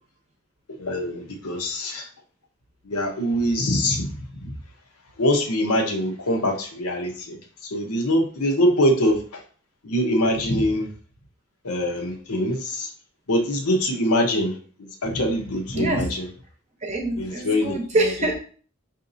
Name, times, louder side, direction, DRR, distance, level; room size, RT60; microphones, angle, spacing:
voice 1, 0.7-2.1 2.8-4.5 5.2-9.4 9.8-10.9 11.6-12.9 13.3-16.3 17.2-18.1, equal, 85° left, 2 dB, 0.9 m, -24 dB
voice 2, 15.7-16.1 16.8-18.3, right 1 dB, 30° right, 2 dB, 0.7 m, -25 dB
5.8 x 2.7 x 2.6 m, 0.42 s
head